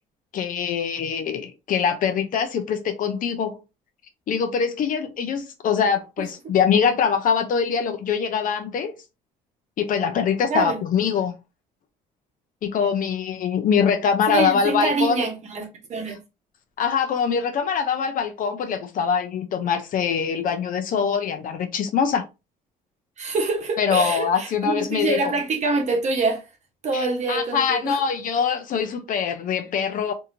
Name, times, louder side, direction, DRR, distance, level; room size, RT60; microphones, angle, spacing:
voice 1, 0.3-3.6 4.3-9.0 9.8-11.3 12.6-15.2 16.8-22.3 23.8-25.2 26.9-30.1, left 7 dB, 55° left, 0.6 m, -23 dB
voice 2, 14.3-16.2 23.2-26.5 26.8-28.0, right 3 dB, 45° right, 1.0 m, -25 dB
2.7 x 2.7 x 2.6 m
cardioid pair, 110°, 17 cm